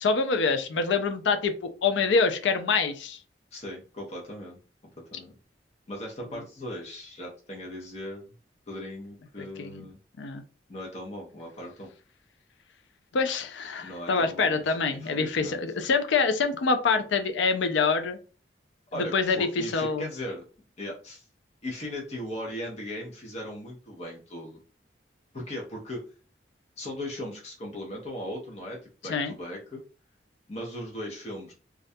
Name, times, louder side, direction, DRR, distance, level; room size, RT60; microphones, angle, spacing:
voice 1, 0.0-3.2 9.6-9.8 10.2-10.4 13.1-18.2 18.9-20.1 29.1-29.3, left 4 dB, 85° left, 8 dB, 0.4 m, -26 dB
voice 2, 3.5-4.6 5.0-5.4 5.9-8.2 8.7-10.0 10.7-11.9 13.8-15.6 18.9-20.4 20.8-21.2 21.6-24.6 25.3-26.0 26.8-28.8 29.0-29.8 30.5-31.5, left 1 dB, 35° left, -2 dB, 0.6 m, -38 dB
2.3 x 2.1 x 2.6 m, 0.37 s
head